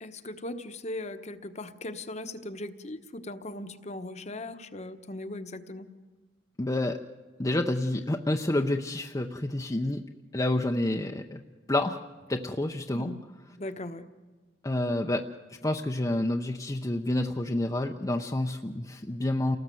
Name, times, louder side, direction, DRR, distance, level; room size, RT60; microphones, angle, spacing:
voice 1, 0.0-5.9 12.9-13.2 13.6-14.1, left 1 dB, 35° left, 9 dB, 1.1 m, -38 dB
voice 2, 6.6-7.0 7.4-10.0 10.3-11.4 11.7-12.0 12.3-13.1 14.6-15.3 15.6-19.6, left 1 dB, 20° left, 3 dB, 0.7 m, -28 dB
29.0 x 19.0 x 7.7 m, 1.4 s
head